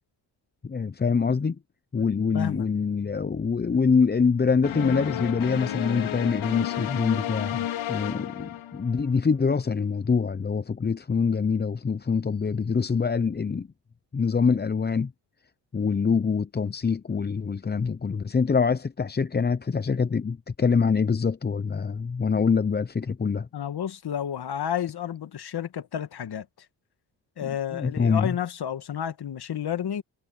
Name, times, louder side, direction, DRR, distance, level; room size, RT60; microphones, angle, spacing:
voice 1, 0.6-1.6 1.9-13.7 14.1-15.1 15.7-23.5 27.4-28.4, left 5 dB, 20° left, 0.7 m, -25 dB
voice 2, 2.3-2.7 23.5-26.5 27.4-30.0, left 9 dB, 50° left, 1.8 m, -31 dB
sound 1, 4.6-9.1, left 12 dB, 75° left, 3.5 m, -31 dB
supercardioid pair, 70°, 48 cm